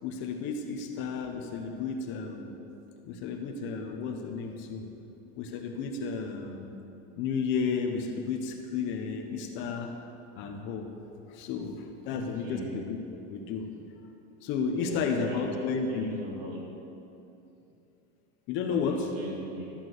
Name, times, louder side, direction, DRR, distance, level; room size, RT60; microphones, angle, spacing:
voice 1, 0.0-2.6 3.0-4.9 5.4-6.8 7.2-10.0 10.3-10.9 11.3-13.0 13.3-13.7 14.4-16.2 18.5-19.1, left 5 dB, 35° left, 4 dB, 1.0 m, -32 dB
voice 2, 12.1-12.9 14.8-16.7 18.7-19.7, right 1 dB, 65° right, -3 dB, 3.2 m, -40 dB
13.0 x 7.3 x 6.3 m, 2.7 s
supercardioid pair, 160°, 32 cm